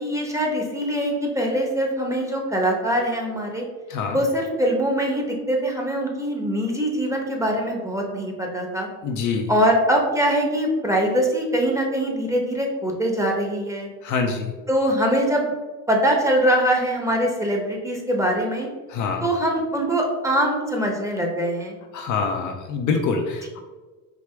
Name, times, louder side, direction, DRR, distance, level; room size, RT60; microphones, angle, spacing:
voice 1, 0.0-3.6 4.1-8.9 9.5-13.9 14.7-15.5 15.9-18.7 19.2-21.8, equal, 10° right, 1 dB, 1.0 m, -23 dB
voice 2, 9.0-9.5 14.0-14.5 18.9-19.2 21.9-23.6, left 5 dB, 50° left, 3 dB, 0.7 m, -25 dB
4.8 x 2.8 x 3.4 m, 1.3 s
supercardioid pair, 85°, 39 cm